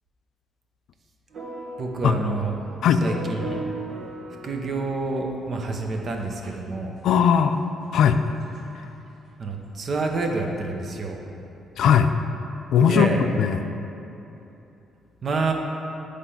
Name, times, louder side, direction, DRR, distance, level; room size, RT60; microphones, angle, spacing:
sound 1, 1.3-5.1 6.2-6.5 7.2-7.3 7.6-7.7 8.0-8.1 8.4-8.6 10.3-10.4, right 2 dB, 75° right, 1.5 m, -37 dB
voice 1, 1.8-2.5 3.0-3.6 4.4-6.9 9.4-11.2 12.9-13.2 15.2-15.5, right 3 dB, 50° right, 2 dB, 0.8 m, -28 dB
voice 2, 7.0-7.6 7.9-8.2 11.8-12.1 12.7-13.6, left 7 dB, 75° left, 9 dB, 0.3 m, -18 dB
8.2 x 3.3 x 5.5 m, 2.9 s
cardioid pair, 90°, 0 cm